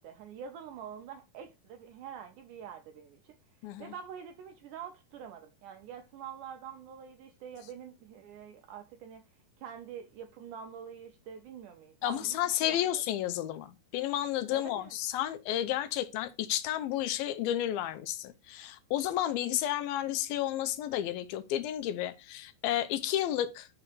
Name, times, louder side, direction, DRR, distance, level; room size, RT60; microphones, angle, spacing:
voice 1, 0.0-12.4 12.6-13.0 14.5-15.0, right 8 dB, 80° right, 1.8 m, -46 dB
voice 2, 3.6-3.9 12.0-23.7, left 12 dB, 80° left, 2.5 m, -32 dB
6.4 x 3.8 x 5.9 m
omnidirectional pair, 4.3 m